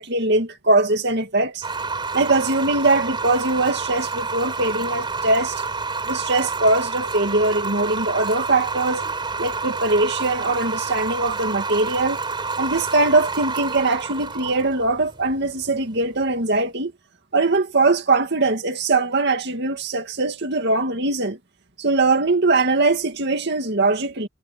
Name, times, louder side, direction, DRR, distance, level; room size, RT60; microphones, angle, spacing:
voice 1, 0.0-1.6 2.1-5.6 6.1-9.1 9.4-12.2 12.6-16.9 17.3-21.4 21.8-24.3, right 2 dB, 60° right, 2.3 m, -21 dB
sound 1, 1.6-16.6, right 4 dB, 25° right, 4.5 m, -29 dB
head